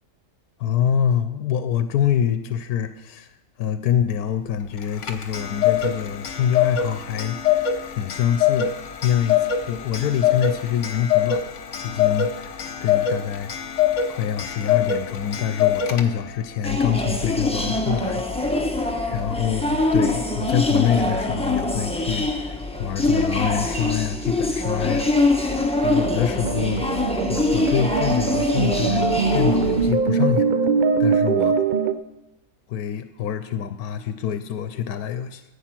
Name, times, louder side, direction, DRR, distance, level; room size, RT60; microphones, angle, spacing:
voice 1, 0.6-3.3 3.6-9.4 9.7-11.4 11.8-13.5 14.1-18.6 19.1-25.3 25.8-26.9 27.3-29.1 29.3-30.5 31.0-31.6 32.7-35.4, left 9 dB, 85° left, 10 dB, 1.2 m, -25 dB
Clock, 4.8-16.4, left 9 dB, 55° left, 1.3 m, -24 dB
sound 1, 16.6-29.9, left 2 dB, 5° left, 0.9 m, -24 dB
sound 2, 26.4-31.9, right 5 dB, 75° right, 0.4 m, -22 dB
14.5 x 8.8 x 5.9 m, 1.0 s
omnidirectional pair, 1.6 m